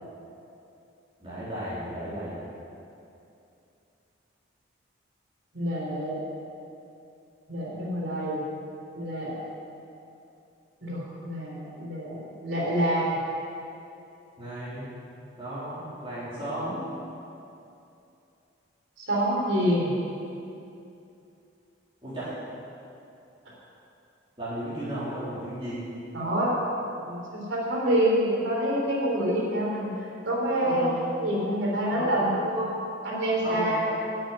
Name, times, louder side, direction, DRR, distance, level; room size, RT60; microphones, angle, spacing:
voice 1, 1.2-2.4 14.4-14.9 15.4-16.8 22.0-22.3 24.4-25.9 30.6-31.0 31.8-32.1 33.4-33.7, right 1 dB, 25° right, -11 dB, 3.5 m, -34 dB
voice 2, 5.5-6.2 7.5-8.4 8.9-9.4 10.8-13.2 19.0-19.9 26.1-26.6 27.0-29.9 30.2-30.9 31.2-32.7 33.0-34.0, right 1 dB, 75° right, -4 dB, 3.6 m, -27 dB
11.0 x 7.5 x 9.1 m, 2.7 s
head